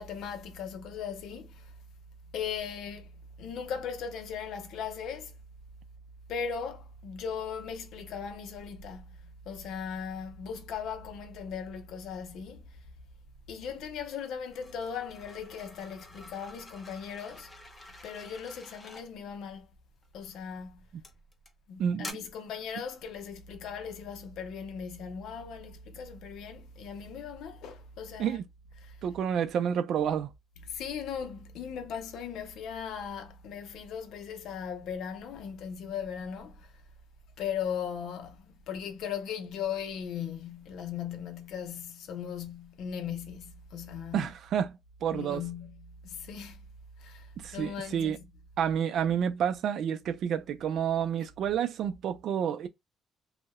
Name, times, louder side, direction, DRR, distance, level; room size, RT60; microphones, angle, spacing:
voice 1, 0.0-1.7 2.3-3.1 3.4-5.3 6.3-9.1 9.5-12.6 13.5-17.5 18.0-19.7 20.1-20.8 21.7-28.4 28.8-29.0 30.6-36.7 37.4-44.3 45.1-46.6 47.0-48.2, left 7 dB, 85° left, 0.5 m, -38 dB
sound 1, 14.5-19.1 20.0-20.3 21.0-21.5 22.0-22.1, left 2 dB, 25° left, 0.6 m, -48 dB
voice 2, 21.8-22.2 28.2-28.5 29.0-30.3 44.1-45.4 47.4-48.2 48.6-52.7, right 8 dB, 75° right, 0.3 m, -29 dB
2.6 x 2.1 x 2.4 m
cardioid pair, 90°, 0 cm